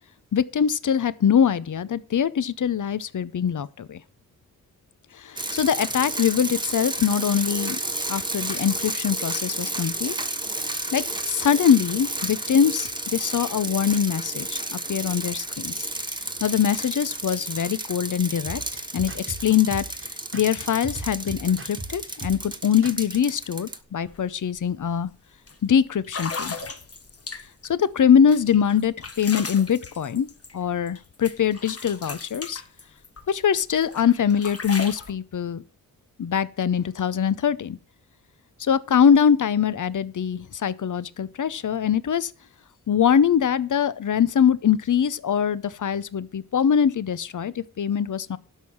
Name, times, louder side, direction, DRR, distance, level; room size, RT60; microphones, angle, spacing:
voice 1, 0.3-4.0 5.1-7.8 8.1-10.1 10.9-15.9 16.4-18.6 18.9-19.8 20.3-25.1 25.6-26.6 27.7-30.3 30.5-32.6 33.3-35.6 36.2-37.8 38.6-42.3 42.9-48.4, left 8 dB, 65° left, 0.7 m, -23 dB
sound 1, 5.4-23.8, right 1 dB, 15° right, 1.2 m, -32 dB
sound 2, 18.5-23.4, right 2 dB, 35° right, 1.2 m, -38 dB
sound 3, 24.0-24.2 24.5-24.8 25.5-25.6 26.0-27.7 28.3-31.0 31.2-33.3 33.7-35.1, left 4 dB, 45° left, 1.4 m, -36 dB
12.5 x 5.6 x 6.2 m
wide cardioid pair, 80°, 33 cm